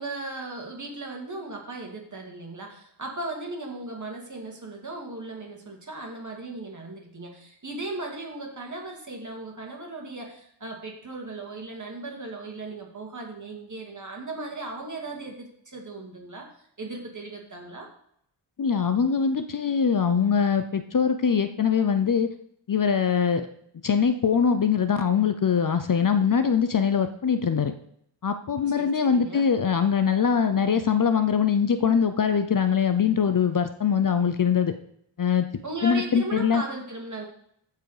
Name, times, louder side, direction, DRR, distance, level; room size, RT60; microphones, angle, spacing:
voice 1, 0.0-16.5 16.8-17.9 28.7-29.5 35.6-37.3, right 2 dB, 40° right, 0 dB, 2.4 m, -37 dB
voice 2, 18.6-22.3 22.7-23.5 23.8-27.7 28.2-34.7 35.2-35.5 35.8-36.6, left 7 dB, 45° left, 9 dB, 0.6 m, -22 dB
14.5 x 4.8 x 4.9 m, 0.69 s
wide cardioid pair, 115°, 48 cm